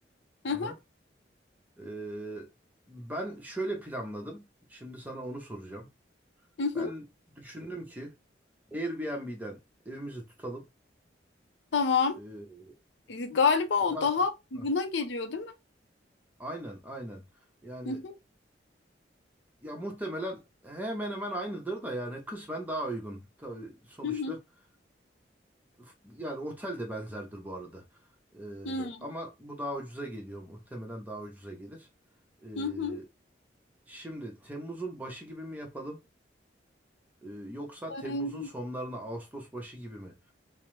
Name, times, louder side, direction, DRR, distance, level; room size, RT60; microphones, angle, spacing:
voice 1, 1.8-2.5 2.9-5.9 6.7-7.0 7.3-8.1 8.7-9.6 9.9-10.7 12.1-12.7 13.8-14.1 14.5-14.6 16.4-17.2 17.6-18.0 19.6-24.4 25.8-27.8 28.3-31.9 32.4-33.0 33.9-36.0 37.2-40.2, right 1 dB, 10° right, 0.7 m, -38 dB
voice 2, 6.6-6.9 11.7-12.2 13.1-15.5 17.9-18.1 24.0-24.3 28.6-29.0 32.6-33.0 37.9-38.5, left 5 dB, 75° left, 0.5 m, -28 dB
2.9 x 2.0 x 3.0 m
head